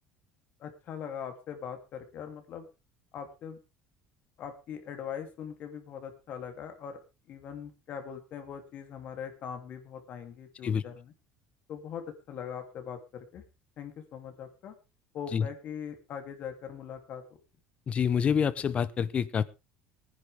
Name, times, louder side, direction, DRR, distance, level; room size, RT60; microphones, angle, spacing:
voice 1, 0.6-2.7 3.1-3.6 4.4-7.0 7.3-11.1 11.7-13.4 13.8-14.7 15.1-17.2, left 8 dB, 50° left, 6 dB, 2.9 m, -41 dB
voice 2, 17.9-19.4, left 7 dB, 30° left, 18 dB, 0.8 m, -27 dB
20.0 x 10.0 x 3.5 m, 0.28 s
cardioid pair, 130°, 4 cm